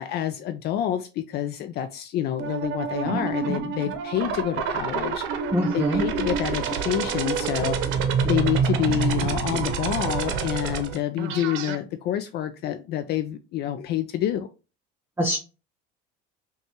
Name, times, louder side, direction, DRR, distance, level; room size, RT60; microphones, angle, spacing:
voice 1, 0.0-5.2 5.7-7.8 8.2-14.5, left 11 dB, 50° left, 0.4 m, -27 dB
sound 1, 2.4-11.8, right 6 dB, 65° right, 0.7 m, -27 dB
voice 2, 5.5-6.0 15.2-15.4, equal, 10° right, 0.6 m, -23 dB
5.3 x 2.3 x 2.9 m
cardioid pair, 125°, 21 cm